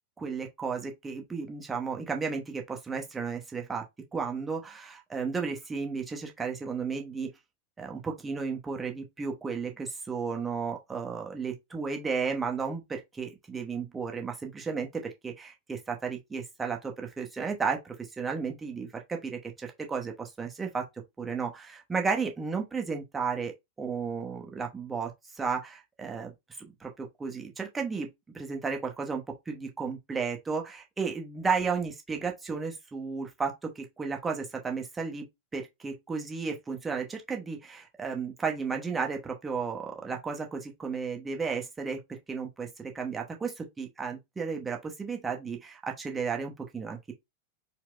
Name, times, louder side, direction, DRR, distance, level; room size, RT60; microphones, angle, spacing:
voice 1, 0.2-3.8 4.1-7.3 7.8-20.9 21.2-23.5 23.8-26.3 26.6-47.1, right 5 dB, 15° right, 0.8 m, -33 dB
4.4 x 2.0 x 2.4 m
figure-of-eight pair, 90°, 0 cm